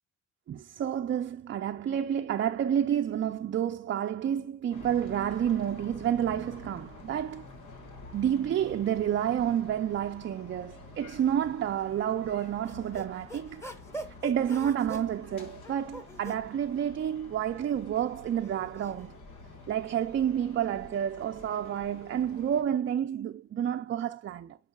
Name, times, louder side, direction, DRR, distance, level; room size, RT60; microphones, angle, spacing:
voice 1, 0.5-7.4 8.1-13.6 14.2-19.1 19.7-24.6, right 9 dB, 40° right, 0.5 m, -29 dB
sound 1, 4.7-22.6, left 2 dB, 75° left, 2.0 m, -49 dB
sound 2, 12.4-16.5 17.4-19.1, right 1 dB, 10° left, 1.3 m, -44 dB
10.5 x 5.5 x 2.3 m
cardioid pair, 90°, 30 cm